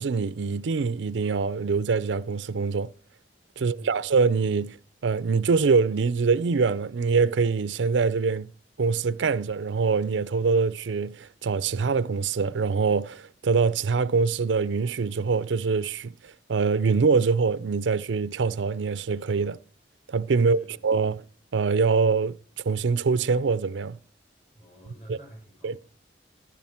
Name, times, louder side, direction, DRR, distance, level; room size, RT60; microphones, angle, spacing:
voice 1, 0.0-2.9 3.6-4.8 5.0-8.5 8.8-16.1 16.5-19.6 20.1-21.2 21.5-22.4 22.7-24.0 25.1-25.2 25.6-25.8, right 4 dB, 75° right, 0.5 m, -24 dB
voice 2, 3.6-4.0 20.4-20.8 24.5-26.0, right 1 dB, 35° left, 6.0 m, -48 dB
11.5 x 10.5 x 4.3 m
head